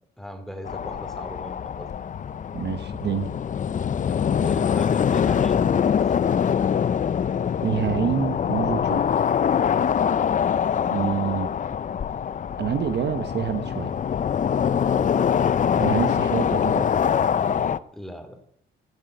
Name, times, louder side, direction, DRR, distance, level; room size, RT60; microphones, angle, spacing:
voice 1, 0.2-1.9 4.0-6.2 14.8-15.1 17.9-18.4, equal, ahead, 7 dB, 2.8 m, -38 dB
sound 1, 0.7-17.8, left 8 dB, 40° left, 0.6 m, -24 dB
voice 2, 2.5-3.3 7.6-9.2 10.9-11.5 12.6-13.9 15.8-16.9, right 8 dB, 60° right, 10 dB, 1.1 m, -27 dB
15.5 x 8.4 x 8.0 m, 0.73 s
cardioid pair, 90°, 20 cm